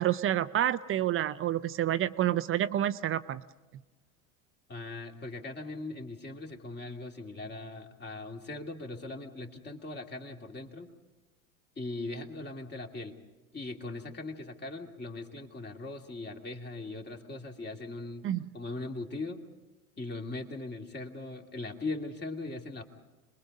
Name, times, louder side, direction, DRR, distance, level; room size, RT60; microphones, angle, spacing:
voice 1, 0.0-3.4 18.2-18.5, right 12 dB, 30° right, 13 dB, 0.6 m, -28 dB
voice 2, 4.7-10.9 11.8-13.1 13.5-18.3 18.5-19.4 20.0-22.8, left 2 dB, 25° left, 2 dB, 2.4 m, -40 dB
26.5 x 21.5 x 5.3 m, 1.2 s
hypercardioid pair, 95°, 43 cm